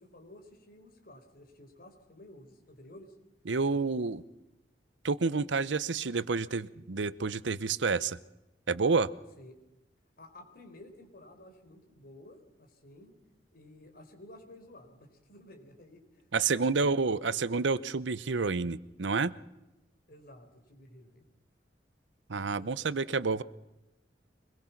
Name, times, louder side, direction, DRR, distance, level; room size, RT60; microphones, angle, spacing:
voice 1, 0.0-3.1 9.4-9.7 10.2-13.1 13.5-17.1 20.1-21.3 22.6-22.7, left 1 dB, 55° left, 5 dB, 4.2 m, -53 dB
voice 2, 3.5-4.2 5.0-8.2 8.7-9.1 16.3-19.3 22.3-23.4, right 4 dB, 85° right, 17 dB, 0.8 m, -29 dB
24.5 x 21.0 x 5.9 m, 0.99 s
head